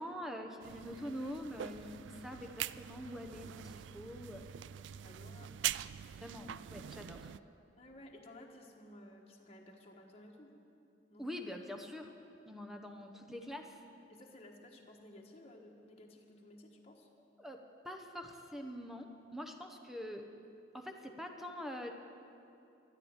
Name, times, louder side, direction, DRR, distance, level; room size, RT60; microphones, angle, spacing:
voice 1, 0.0-4.5 6.2-7.3 11.2-12.1 12.4-13.8 17.4-20.3 20.7-21.9, equal, ahead, 4 dB, 0.9 m, -45 dB
sound 1, 0.6-7.4, right 11 dB, 85° right, 0.3 m, -43 dB
voice 2, 4.9-5.6 7.8-10.6 11.1-11.3 14.1-17.1, left 1 dB, 35° left, 0 dB, 1.4 m, -55 dB
13.5 x 11.5 x 8.8 m, 2.8 s
head